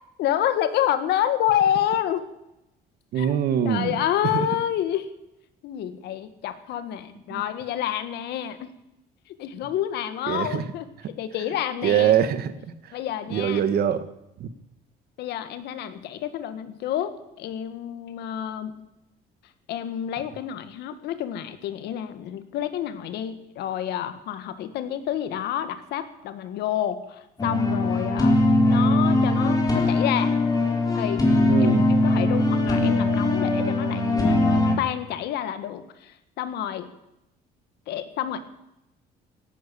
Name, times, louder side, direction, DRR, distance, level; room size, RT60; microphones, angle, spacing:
voice 1, 0.2-2.2 3.2-3.3 3.7-5.1 5.6-8.7 9.3-10.9 11.2-12.3 12.9-13.6 15.2-18.7 19.7-28.4 28.7-30.4 30.9-36.9 37.9-38.4, left 11 dB, 80° left, 11 dB, 1.7 m, -28 dB
voice 2, 3.1-4.0 4.3-4.4 7.3-7.4 10.3-10.6 11.8-12.7 13.3-14.1 14.4-14.5 31.5-31.9, right 9 dB, 65° right, 12 dB, 1.5 m, -23 dB
sound 1, 27.4-34.7, left 2 dB, 20° left, 4.2 m, -21 dB
17.0 x 12.0 x 7.0 m, 0.87 s
cardioid pair, 110°, 17 cm